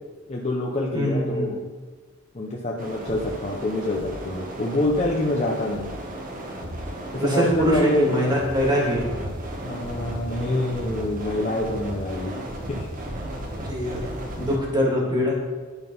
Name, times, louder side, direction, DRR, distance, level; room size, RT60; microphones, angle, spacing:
voice 1, 0.3-1.7 2.3-5.9 7.1-8.2 9.6-12.3 12.8-12.9, left 2 dB, 35° left, -2 dB, 0.7 m, -26 dB
voice 2, 0.9-1.5 7.2-9.1 13.6-14.0 14.4-15.4, equal, 20° right, -3 dB, 1.9 m, -23 dB
sound 1, 2.8-14.6, right 1 dB, 40° right, 1.1 m, -34 dB
9.7 x 3.8 x 5.4 m, 1.4 s
head